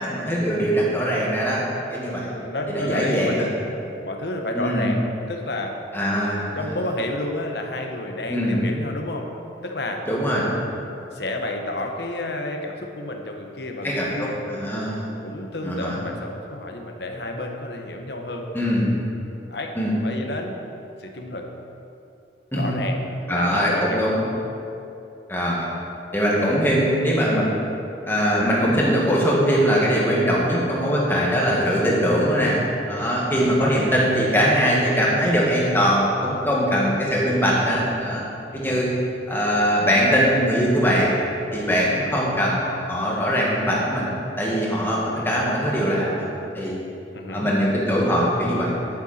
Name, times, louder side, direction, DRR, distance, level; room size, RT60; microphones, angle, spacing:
voice 1, 0.0-1.6 1.9-2.4 2.7-3.5 4.5-4.9 5.9-6.7 8.3-8.6 10.1-10.5 13.8-15.1 15.6-16.0 18.5-18.9 19.8-19.9 22.5-22.7 23.3-24.2 25.3-25.7 26.1-27.5 28.0-32.6 32.9-38.2 38.5-38.9 39.3-41.2 41.5-46.8 47.3-48.7, equal, 10° left, -5 dB, 1.9 m, -21 dB
voice 2, 1.7-3.5 4.0-5.8 6.5-9.3 9.6-10.6 11.1-14.4 15.2-18.5 19.5-19.7 20.0-20.6 21.0-21.5 22.5-24.1 30.0-30.3 33.1-33.5 36.6-37.0 38.5-38.9 41.9-42.3 45.1-45.3 47.1-47.5, left 1 dB, 65° left, 3 dB, 1.1 m, -31 dB
10.5 x 9.7 x 4.3 m, 2.8 s
head